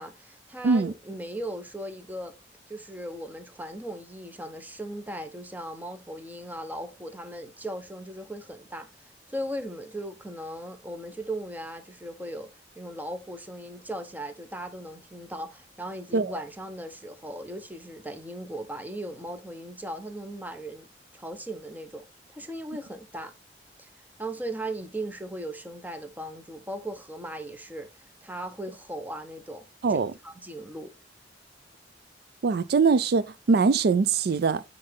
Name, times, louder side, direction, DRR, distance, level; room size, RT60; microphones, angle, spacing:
voice 1, 0.0-2.3 2.7-8.9 9.3-12.5 12.8-20.9 21.1-23.3 23.8-23.9 24.2-30.9, right 1 dB, 10° right, 0.9 m, -38 dB
voice 2, 32.4-34.6, right 4 dB, 60° right, 0.4 m, -22 dB
9.4 x 3.8 x 3.5 m
head